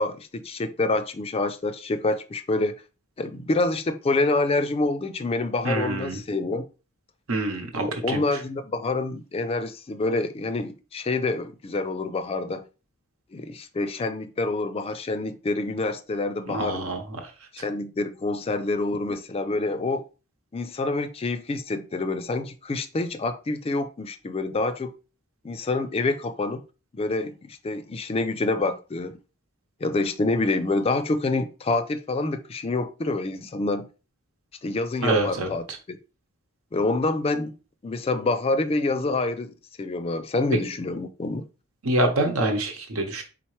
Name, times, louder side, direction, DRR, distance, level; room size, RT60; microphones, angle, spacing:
voice 1, 0.0-2.8 3.2-6.6 7.8-12.6 13.3-16.8 17.5-20.0 20.5-24.9 25.4-26.6 26.9-29.1 29.8-33.9 34.6-36.0 36.7-37.5 37.8-41.4, left 2 dB, 30° left, 0.4 m, -27 dB
voice 2, 5.6-6.2 7.3-8.2 16.5-17.3 35.0-35.5 41.8-43.2, right 2 dB, 80° right, 1.0 m, -26 dB
4.4 x 3.8 x 3.1 m
head